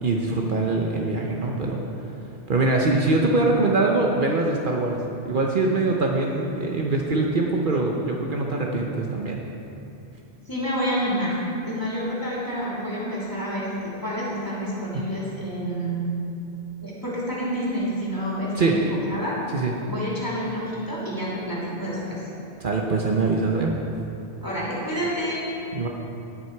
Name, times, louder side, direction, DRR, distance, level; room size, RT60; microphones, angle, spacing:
voice 1, 0.0-1.8 2.5-5.0 5.2-9.4 14.9-15.0 18.5-18.8 19.5-19.7 22.6-23.7 25.7-25.9, right 3 dB, 55° right, 0 dB, 1.0 m, -23 dB
voice 2, 10.5-11.3 11.6-16.0 16.8-19.4 19.8-22.3 24.4-25.4, equal, 20° left, -8 dB, 3.0 m, -28 dB
18.0 x 6.1 x 4.5 m, 2.7 s
omnidirectional pair, 1.1 m